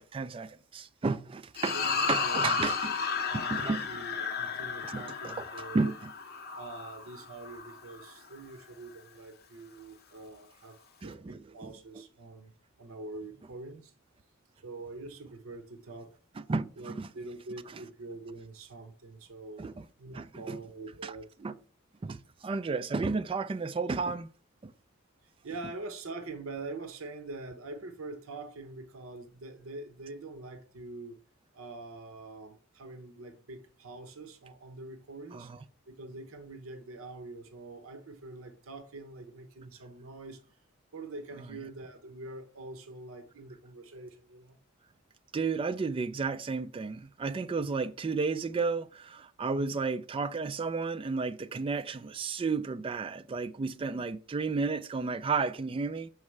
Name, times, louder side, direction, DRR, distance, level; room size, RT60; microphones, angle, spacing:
voice 1, 0.0-1.8 2.1-2.9 3.3-3.9 4.9-5.4 5.7-6.1 11.0-11.7 16.5-17.1 19.6-19.8 20.1-20.6 21.0-21.1 21.4-21.6 22.0-24.3 24.6-24.7 35.3-35.6 45.3-56.1, right 4 dB, 25° right, 0.3 m, -32 dB
sound 1, 1.6-8.1, left 5 dB, 50° left, 0.7 m, -33 dB
voice 2, 1.7-2.6 3.2-5.9 6.5-12.5 12.8-13.9 14.6-16.2 16.8-19.7 20.0-21.3 25.4-31.2 31.5-35.5 35.9-40.4 40.9-44.6 47.6-47.7 49.5-49.8 53.8-54.0, right 2 dB, 80° right, 0.8 m, -44 dB
6.3 x 4.8 x 3.2 m
head